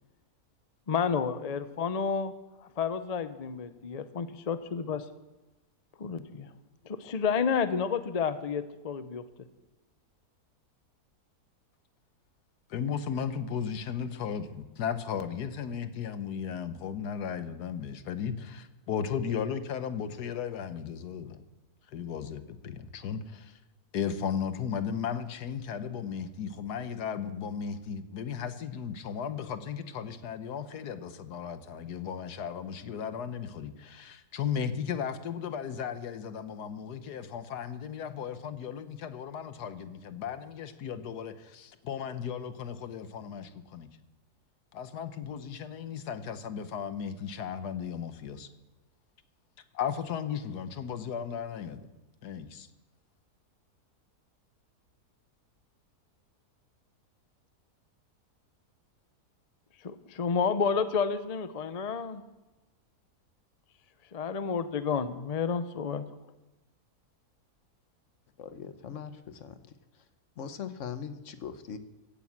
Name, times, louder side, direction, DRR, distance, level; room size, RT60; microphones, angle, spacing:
voice 1, 0.9-2.3 2.6-5.0 6.0-6.5 6.8-9.2 59.8-62.2 64.1-66.0, left 6 dB, 40° left, 11 dB, 0.6 m, -30 dB
voice 2, 12.7-21.4 21.9-23.6 23.9-43.9 44.7-48.5 49.7-51.9 52.2-52.7, left 7 dB, 85° left, 11 dB, 1.5 m, -35 dB
voice 3, 68.4-69.6 70.4-71.8, left 7 dB, 55° left, 10 dB, 1.2 m, -40 dB
16.5 x 9.3 x 7.3 m, 1.1 s
omnidirectional pair, 1.7 m